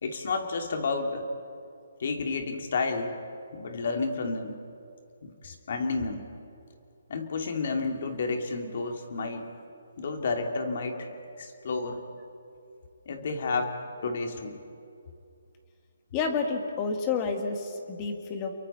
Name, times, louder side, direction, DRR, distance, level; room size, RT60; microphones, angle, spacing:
voice 1, 0.0-1.3 2.0-3.2 3.5-4.6 5.2-6.3 7.1-9.5 10.0-11.1 11.4-12.0 13.1-13.7 14.0-14.6, left 4 dB, 50° left, 4 dB, 2.7 m, -31 dB
voice 2, 16.1-18.5, left 5 dB, 20° left, 4 dB, 2.0 m, -30 dB
29.5 x 23.0 x 4.4 m, 2.5 s
hypercardioid pair, 160°, 0 cm